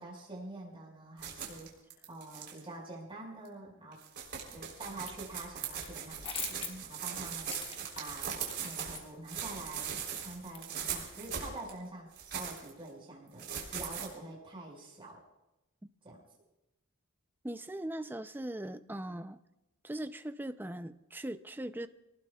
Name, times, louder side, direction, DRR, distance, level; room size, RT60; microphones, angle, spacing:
voice 1, 0.0-1.7 2.1-4.0 4.5-7.5 7.9-15.2 16.0-16.2, right 2 dB, 25° right, -4 dB, 5.1 m, -46 dB
sound 1, 1.2-2.6 3.4-3.5 3.9-9.0 9.3-11.7 12.1-12.7 13.4-14.1, right 7 dB, 50° right, 3.6 m, -40 dB
sound 2, 4.5-5.1 5.4-11.0, left 5 dB, 25° left, 1.4 m, -44 dB
voice 2, 17.4-19.4 19.8-21.9, right 1 dB, 10° right, 10 dB, 0.5 m, -40 dB
26.5 x 19.0 x 2.4 m, 0.96 s
head